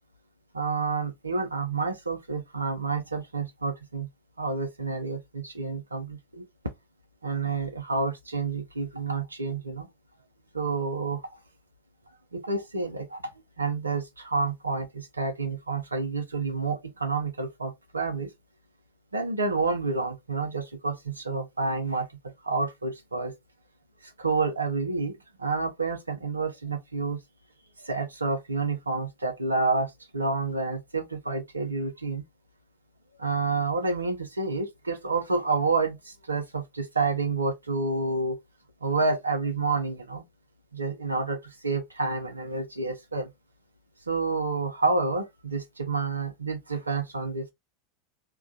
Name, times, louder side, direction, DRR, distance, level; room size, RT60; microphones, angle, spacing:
voice 1, 0.5-4.1 4.4-6.4 7.2-9.9 10.5-11.2 12.3-13.2 13.6-18.3 19.1-22.1 22.4-23.3 24.2-25.1 25.4-27.2 27.8-32.2 33.2-38.4 38.8-40.2 40.7-41.4 41.6-43.3 44.1-47.5, right 3 dB, 90° right, 0.6 m, -29 dB
2.2 x 2.2 x 2.6 m
figure-of-eight pair, 80°, 0 cm